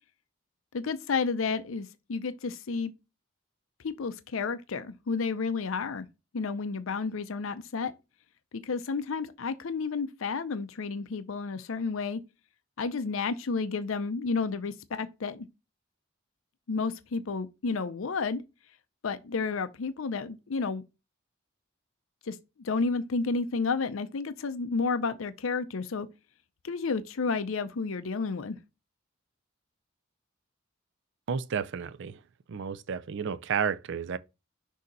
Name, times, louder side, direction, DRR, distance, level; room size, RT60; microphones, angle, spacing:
voice 1, 0.7-2.9 3.8-6.1 6.3-7.9 8.5-12.2 12.8-15.5 16.7-18.4 19.0-20.8 22.3-26.1 26.6-28.6, left 4 dB, 70° left, 0.5 m, -31 dB
voice 2, 31.3-32.2 32.5-34.2, right 6 dB, 60° right, 0.4 m, -31 dB
6.5 x 2.8 x 5.3 m
head